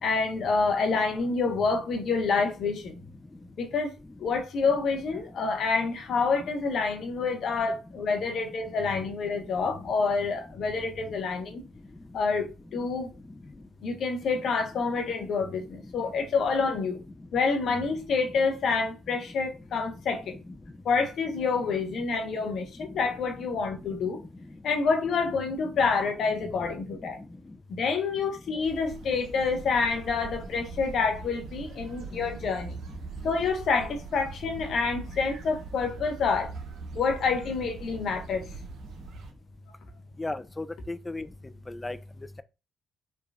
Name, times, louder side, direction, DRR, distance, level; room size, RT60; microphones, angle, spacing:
voice 1, 0.0-2.9 3.6-3.9 4.2-11.6 12.1-13.1 13.8-17.0 17.3-20.4 20.8-24.2 24.6-27.2 27.7-32.8 33.2-36.5 36.9-38.5, left 4 dB, 55° left, 0.6 m, -27 dB
sound 1, 28.6-39.3, right 4 dB, 60° right, 0.5 m, -42 dB
voice 2, 40.2-41.3 41.7-42.0, left 2 dB, 20° left, 0.3 m, -34 dB
3.1 x 2.2 x 2.5 m
hypercardioid pair, 45°, 0 cm